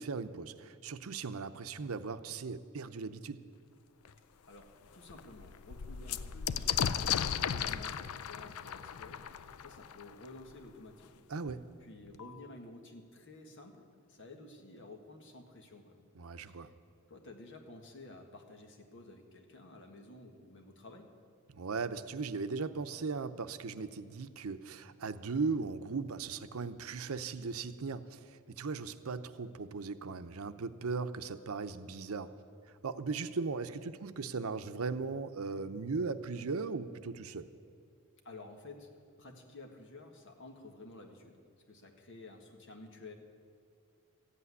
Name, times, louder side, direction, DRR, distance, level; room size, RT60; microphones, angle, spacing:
voice 1, 0.0-3.4 11.3-11.6 16.1-16.7 21.5-32.3 32.8-37.5, right 4 dB, 85° right, 11 dB, 0.7 m, -38 dB
sound 1, 4.0-4.1 4.6-4.7 5.0-10.5 11.5-11.6 11.8-12.4, left 8 dB, 90° left, 0.5 m, -36 dB
voice 2, 4.4-11.2 11.8-16.0 16.5-16.7 17.1-21.1 38.2-38.9 39.2-41.4 41.7-43.1, left 2 dB, 60° left, 3 dB, 1.7 m, -52 dB
14.5 x 8.4 x 9.6 m, 2.3 s
head